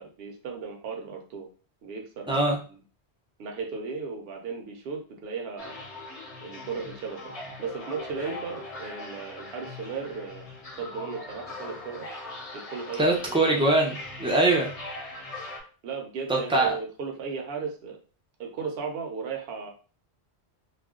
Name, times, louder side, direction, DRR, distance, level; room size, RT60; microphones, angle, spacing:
voice 1, 0.0-1.5 1.8-2.8 3.4-5.8 6.4-7.2 7.6-10.4 10.8-12.1 12.5-13.2 15.8-18.0 18.4-19.7, right 5 dB, 65° right, 2 dB, 0.8 m, -36 dB
voice 2, 2.3-2.6 13.0-14.7 16.3-16.8, right 2 dB, 10° right, -2 dB, 0.3 m, -22 dB
sound 1, 5.6-15.6, left 2 dB, 40° left, 0.7 m, -41 dB
2.4 x 2.1 x 3.6 m, 0.37 s
omnidirectional pair, 1.1 m